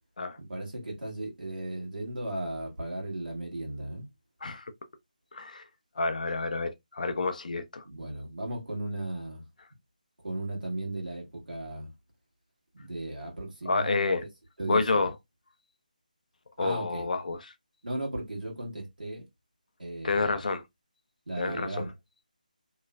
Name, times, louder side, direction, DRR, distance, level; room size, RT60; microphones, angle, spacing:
voice 1, 0.4-4.1 7.8-9.4 10.2-11.9 12.7-14.1 14.6-15.1 16.6-17.1 17.8-19.2 19.8-20.5 21.3-21.9, right 1 dB, 80° right, 1.2 m, -36 dB
voice 2, 5.3-5.6 6.0-7.8 13.7-14.2 14.7-15.1 16.6-17.5 20.0-20.6 21.4-21.9, left 3 dB, 65° left, 0.5 m, -29 dB
3.0 x 2.0 x 2.2 m
figure-of-eight pair, 155°, 5 cm